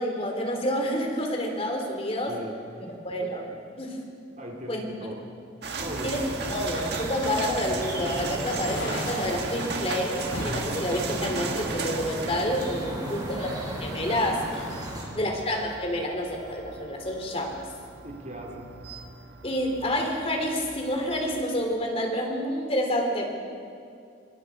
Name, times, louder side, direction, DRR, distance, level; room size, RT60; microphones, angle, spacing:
voice 1, 0.0-2.3 3.0-4.0 4.7-4.9 6.0-13.5 13.8-14.8 15.1-17.6 19.4-23.3, equal, 30° left, 2 dB, 3.0 m, -29 dB
voice 2, 2.3-3.0 4.4-5.2 5.8-6.2 12.8-13.4 14.8-15.3 18.0-18.8, right 1 dB, 40° right, -1 dB, 3.8 m, -40 dB
sound 1, 5.6-21.4, right 4 dB, 60° right, 1.8 m, -38 dB
sound 2, 5.8-15.1, right 1 dB, 20° right, 4.4 m, -35 dB
sound 3, 8.4-9.5 10.3-10.6 11.2-12.3, left 1 dB, 85° left, 7.7 m, -36 dB
26.0 x 26.0 x 4.8 m, 2.3 s
head